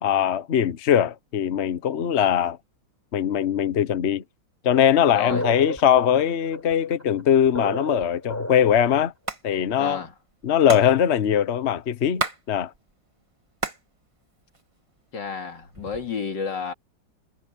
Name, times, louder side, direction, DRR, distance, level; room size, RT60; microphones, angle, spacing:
voice 1, 0.0-2.6 3.1-4.2 4.6-9.1 9.4-10.0 10.4-12.7, left 9 dB, 50° left, 0.9 m, -21 dB
voice 2, 5.1-5.5 9.8-10.1 15.1-16.7, left 6 dB, 70° left, 2.9 m, -31 dB
sound 1, 5.3-9.0, equal, 10° left, 5.4 m, -32 dB
Hands, 9.0-9.4 9.7-9.8 10.0-12.4 12.7-13.9 14.2-15.0 15.6-16.2, right 2 dB, 20° right, 1.5 m, -32 dB
omnidirectional pair, 2.0 m